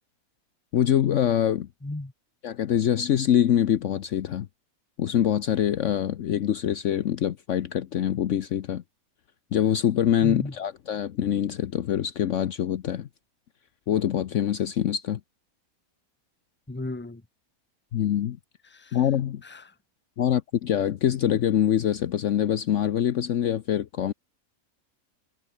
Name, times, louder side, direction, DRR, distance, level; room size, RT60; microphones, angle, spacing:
voice 1, 0.7-1.7 2.4-4.5 5.0-8.8 9.5-13.1 13.9-15.2 17.9-18.4 18.9-19.4 20.2-24.1, left 10 dB, 60° left, 1.0 m, -24 dB
voice 2, 1.8-2.1 10.2-10.5 16.7-17.2 18.6-19.0 19.4-19.7, left 2 dB, 10° left, 1.1 m, -35 dB
omnidirectional pair, 1.5 m